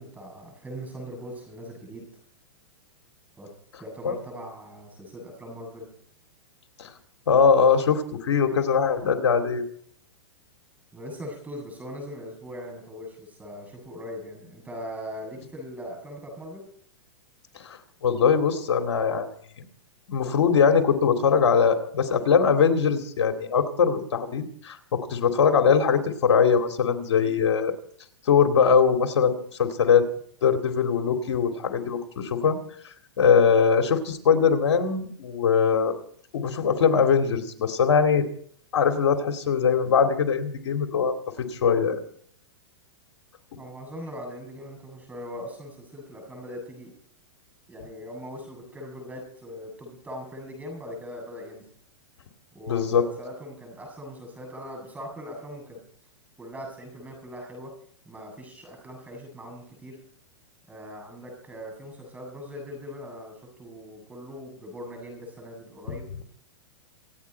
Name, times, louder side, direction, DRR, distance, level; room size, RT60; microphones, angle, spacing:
voice 1, 0.0-2.0 3.4-3.5 3.8-5.9 10.9-16.6 43.6-46.9 47.7-51.7 52.5-55.8 56.4-57.7 58.0-60.0 60.7-66.1, equal, 10° right, 2 dB, 7.4 m, -40 dB
voice 2, 7.3-9.6 17.6-19.3 19.6-19.7 20.1-27.7 28.3-30.1 30.4-32.6 33.2-35.9 36.3-38.2 38.7-41.2 41.5-42.0 52.7-53.0, left 6 dB, 75° left, 6 dB, 2.5 m, -21 dB
27.0 x 9.2 x 4.5 m, 0.62 s
hypercardioid pair, 135°, 15 cm